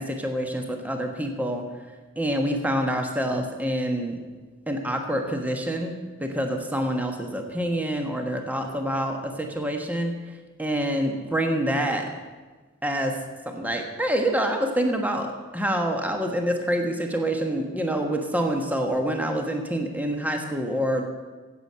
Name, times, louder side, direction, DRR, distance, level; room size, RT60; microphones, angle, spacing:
voice 1, 0.0-1.7 2.2-4.2 4.7-10.1 10.6-12.1 12.8-21.1, right 1 dB, 10° right, 3 dB, 1.2 m, -26 dB
10.0 x 8.3 x 7.4 m, 1.3 s
head